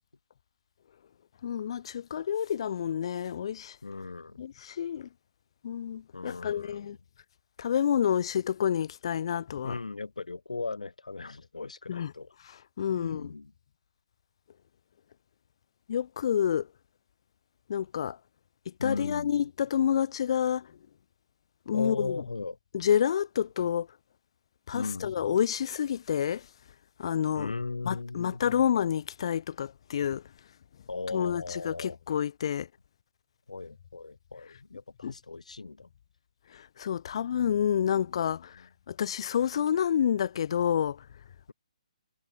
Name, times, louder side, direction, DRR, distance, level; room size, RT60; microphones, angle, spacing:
voice 1, 1.4-3.8 4.4-5.1 5.6-7.0 7.6-9.7 11.9-12.1 12.8-13.3 15.9-16.7 17.7-18.2 18.7-20.7 21.7-22.2 22.7-23.9 24.7-26.5 27.0-27.5 27.8-30.2 31.1-32.7 35.0-35.1 36.5-38.6 38.9-41.1, left 9 dB, 50° left, 0.6 m, -29 dB
voice 2, 3.8-4.4 6.1-7.0 9.6-12.3 12.9-13.5 18.8-19.4 21.7-22.6 24.7-25.2 27.3-28.4 30.9-32.0 33.5-35.9 37.2-37.4 38.5-38.7, left 3 dB, 80° left, 4.4 m, -37 dB
figure-of-eight pair, 140°, 4 cm